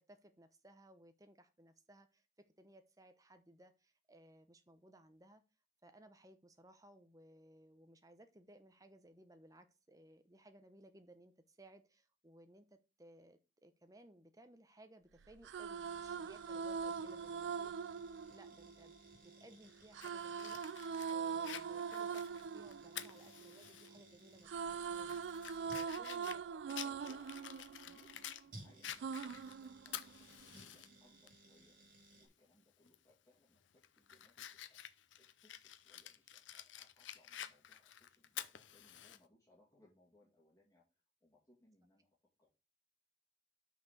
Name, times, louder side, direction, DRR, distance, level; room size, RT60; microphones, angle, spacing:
voice 1, 0.1-2.3 2.6-5.4 5.8-17.8 18.3-22.3 22.5-26.4, right 1 dB, 20° right, 9 dB, 0.9 m, -62 dB
sound 1, 15.3-19.3 19.9-24.0 24.3-28.5 29.0-30.4, right 6 dB, 75° right, 0.4 m, -42 dB
sound 2, 15.8-32.3, right 1 dB, 50° right, 3.6 m, -61 dB
Fire, 20.0-23.9 24.3-24.4 24.9-28.4 28.8-30.9 31.3-31.4 32.9-33.1 33.6-39.2, left 11 dB, 85° left, 0.6 m, -50 dB
voice 2, 25.8-34.9 35.2-42.1 42.4-42.5, left 2 dB, 15° left, -5 dB, 2.4 m, -69 dB
6.2 x 4.9 x 6.3 m, 0.29 s
head